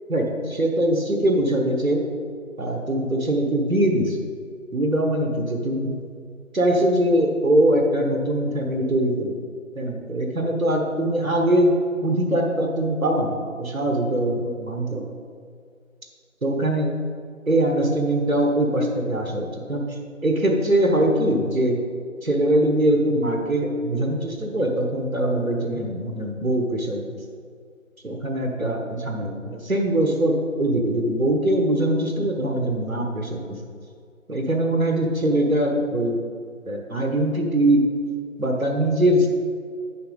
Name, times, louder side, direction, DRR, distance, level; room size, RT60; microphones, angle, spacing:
voice 1, 0.1-2.1 2.6-4.2 4.7-6.0 6.5-9.4 9.7-15.1 16.4-16.9 17.5-21.8 22.2-27.0 28.0-33.6 34.3-36.2 36.7-37.9 38.4-39.3, right 1 dB, 80° right, 2 dB, 1.4 m, -22 dB
10.0 x 6.0 x 3.9 m, 2.2 s
figure-of-eight pair, 175°, 41 cm